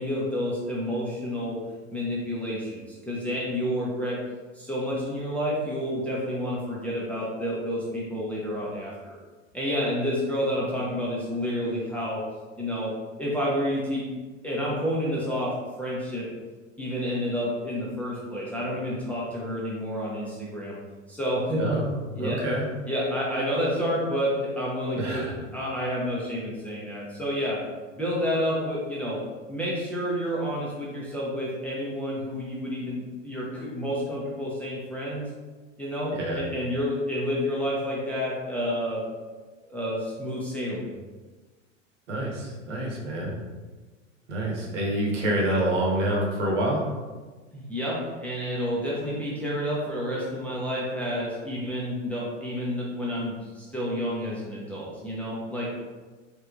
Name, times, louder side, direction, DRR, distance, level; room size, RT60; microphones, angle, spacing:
voice 1, 0.0-1.6 1.9-4.2 4.5-9.2 9.5-12.2 12.6-12.9 13.2-14.0 14.4-16.3 16.8-20.8 21.1-21.6 22.2-22.4 22.9-27.6 27.9-29.2 29.5-35.3 35.8-39.0 39.7-40.9 47.5-55.7, equal, 5° left, -7 dB, 0.5 m, -29 dB
voice 2, 22.2-22.6 25.0-25.3 36.1-36.4 42.1-43.3 44.3-46.9, right 1 dB, 65° right, -2 dB, 1.0 m, -27 dB
3.3 x 3.0 x 2.4 m, 1.3 s
figure-of-eight pair, 85°, 39 cm